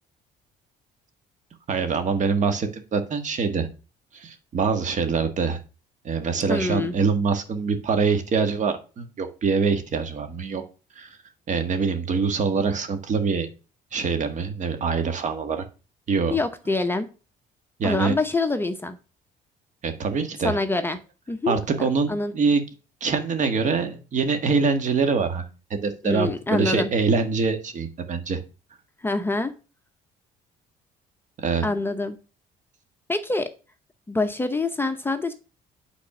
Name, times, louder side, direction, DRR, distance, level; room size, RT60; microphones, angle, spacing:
voice 1, 1.7-3.7 4.1-5.6 6.0-10.6 11.0-11.2 11.5-13.5 13.9-15.6 16.1-16.4 17.8-18.1 19.8-20.6 21.5-22.6 23.0-28.4 31.4-31.6, right 5 dB, 45° right, 7 dB, 1.6 m, -24 dB
voice 2, 6.5-6.9 16.3-17.1 17.8-19.0 20.4-21.0 21.3-21.6 22.1-22.3 26.0-26.9 29.0-29.5 31.6-32.2 33.1-33.5 34.1-35.3, left 3 dB, 15° left, 8 dB, 0.8 m, -25 dB
8.9 x 4.1 x 6.0 m, 0.34 s
cardioid pair, 110°, 17 cm